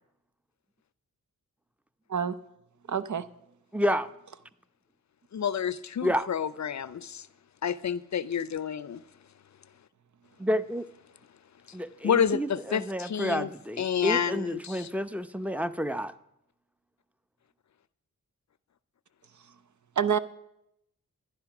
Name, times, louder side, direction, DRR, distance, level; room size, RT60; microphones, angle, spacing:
voice 1, 2.9-3.3 20.0-20.2, right 7 dB, 60° right, 0.8 m, -26 dB
voice 2, 3.7-4.1 6.0-6.2 10.4-10.8 11.7-16.1, equal, 5° right, 0.7 m, -30 dB
voice 3, 5.3-7.3 7.6-9.0 12.0-13.5 13.8-14.9, left 7 dB, 55° left, 0.5 m, -29 dB
12.0 x 10.5 x 5.9 m
cardioid pair, 50°, 34 cm